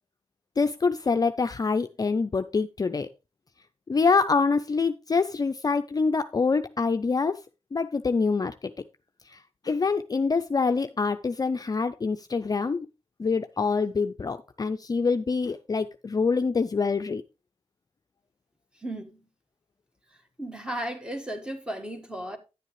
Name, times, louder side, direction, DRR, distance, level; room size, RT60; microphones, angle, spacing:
voice 1, 0.6-3.1 3.9-7.4 7.7-8.5 9.3-9.4 9.6-12.9 13.2-17.2, left 4 dB, 35° left, 0.5 m, -25 dB
voice 2, 18.8-19.2 20.4-22.4, right 1 dB, 10° right, 1.6 m, -35 dB
9.9 x 8.2 x 3.1 m
cardioid pair, 75°, 11 cm